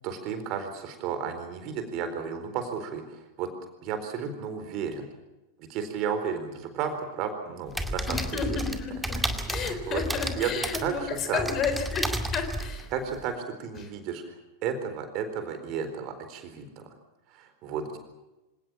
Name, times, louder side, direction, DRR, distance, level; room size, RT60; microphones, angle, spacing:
voice 1, 0.0-3.5 3.8-5.0 5.6-8.2 8.5-8.6 9.5-10.0 10.4-11.4 12.9-14.3 14.6-16.9 17.3-18.0, right 7 dB, 40° right, 8 dB, 4.2 m, -33 dB
sound 1, 7.7-13.3, right 1 dB, 5° right, 2.2 m, -32 dB
voice 2, 8.1-9.2 9.5-12.9 13.8-13.9, left 6 dB, 30° left, 8 dB, 4.0 m, -32 dB
26.5 x 18.5 x 7.3 m, 1.0 s
figure-of-eight pair, 90°, 0 cm